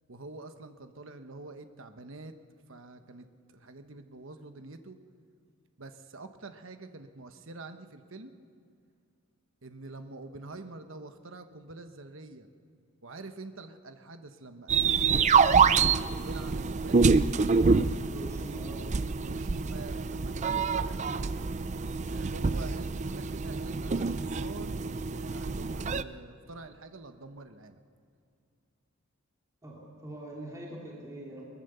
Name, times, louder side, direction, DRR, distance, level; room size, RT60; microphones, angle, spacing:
voice 1, 0.1-2.3 2.7-5.0 5.8-8.3 9.6-12.5 13.0-17.0 19.2-21.0 22.1-27.8, right 2 dB, 60° right, 8 dB, 1.2 m, -46 dB
sound 1, 14.7-26.0, right 5 dB, 35° right, 0.4 m, -26 dB
voice 2, 18.1-18.9 29.6-31.4, right 1 dB, 15° right, -4 dB, 2.8 m, -43 dB
22.0 x 20.0 x 6.9 m, 2.4 s
head